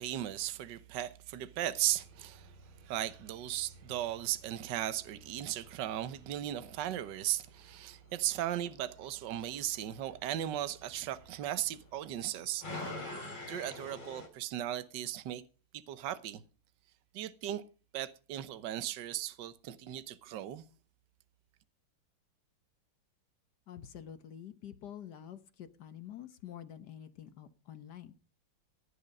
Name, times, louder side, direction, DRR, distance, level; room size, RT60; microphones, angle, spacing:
voice 1, 0.0-2.5 2.8-12.7 13.4-15.4 15.7-16.4 17.1-17.6 17.9-20.6, right 12 dB, 60° right, 1.5 m, -37 dB
sound 1, 1.7-14.3, left 2 dB, 20° left, 4.2 m, -50 dB
voice 2, 23.7-28.1, left 10 dB, 55° left, 1.5 m, -48 dB
16.0 x 10.0 x 5.4 m
omnidirectional pair, 2.4 m